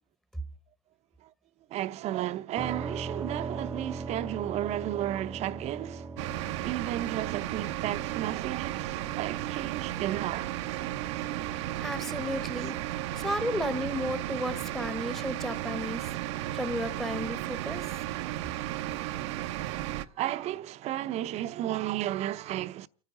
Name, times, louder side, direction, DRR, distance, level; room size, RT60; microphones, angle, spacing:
voice 1, 1.7-6.2 6.6-10.5 19.5-22.9, right 13 dB, 50° right, 0.8 m, -33 dB
sound 1, 2.6-16.3, right 4 dB, 15° right, 0.7 m, -42 dB
sound 2, 6.2-20.1, right 14 dB, 80° right, 0.8 m, -34 dB
voice 2, 11.8-12.8 13.2-16.1 16.5-17.8, left 1 dB, ahead, 1.1 m, -33 dB
29.5 x 9.9 x 3.9 m
supercardioid pair, 110°, 15 cm